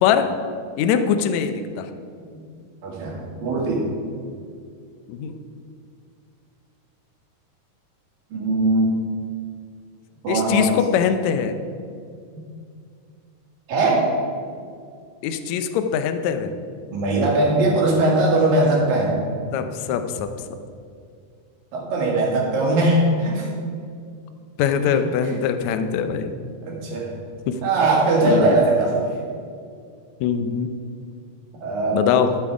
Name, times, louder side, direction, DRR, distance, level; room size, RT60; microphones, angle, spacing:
voice 1, 0.0-0.3 0.8-1.9 5.1-5.3 10.3-11.5 15.2-16.5 19.5-20.3 24.6-26.3 27.5-27.6 28.2-28.6 30.2-30.7 31.9-32.4, left 7 dB, 75° left, 8 dB, 1.7 m, -22 dB
voice 2, 2.8-3.9 8.3-9.0 10.2-10.7 12.3-12.4 13.7-14.1 16.9-19.2 21.7-23.5 25.2-25.3 26.7-27.1 27.6-29.1 31.6-32.4, right 2 dB, 85° right, -3 dB, 3.8 m, -20 dB
12.0 x 8.5 x 4.8 m, 2.3 s
omnidirectional pair, 3.9 m